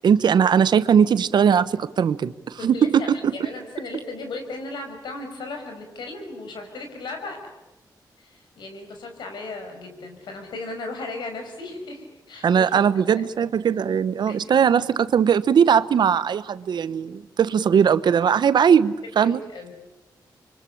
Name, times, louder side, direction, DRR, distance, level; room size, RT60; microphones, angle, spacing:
voice 1, 0.0-3.1 12.4-19.4, right 7 dB, 75° right, 15 dB, 1.0 m, -19 dB
voice 2, 2.6-7.4 8.2-13.2 14.3-14.4 19.2-19.7, left 2 dB, 90° left, 5 dB, 5.7 m, -36 dB
26.5 x 24.0 x 8.6 m, 0.96 s
cardioid pair, 65°, 8 cm